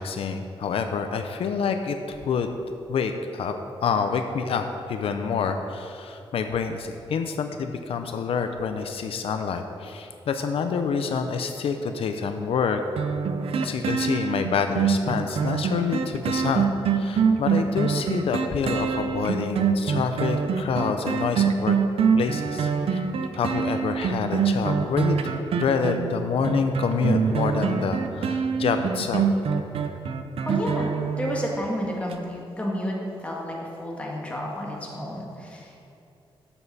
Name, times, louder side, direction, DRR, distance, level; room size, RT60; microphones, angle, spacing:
voice 1, 0.0-2.5 2.9-3.6 3.8-12.8 13.6-21.8 22.2-23.0 23.3-29.2, left 5 dB, 85° left, 7 dB, 0.6 m, -27 dB
sound 1, 13.0-31.7 32.1-32.2, right 6 dB, 85° right, 0.6 m, -25 dB
voice 2, 30.5-30.9 31.2-32.9 33.2-35.8, left 1 dB, 15° left, -3 dB, 1.7 m, -31 dB
12.5 x 7.1 x 4.1 m, 2.7 s
wide cardioid pair, 155°, 10 cm